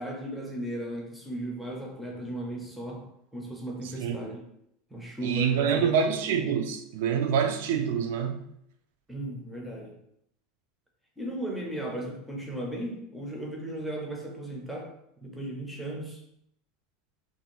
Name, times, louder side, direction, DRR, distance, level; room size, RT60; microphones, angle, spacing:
voice 1, 0.0-3.0 3.3-4.4 4.9-6.0 9.1-10.0 11.2-14.9 15.2-16.2, right 1 dB, ahead, 0.4 m, -36 dB
voice 2, 5.2-8.4, right 7 dB, 70° right, 0.3 m, -26 dB
2.5 x 2.3 x 2.9 m
supercardioid pair, 175°, 0 cm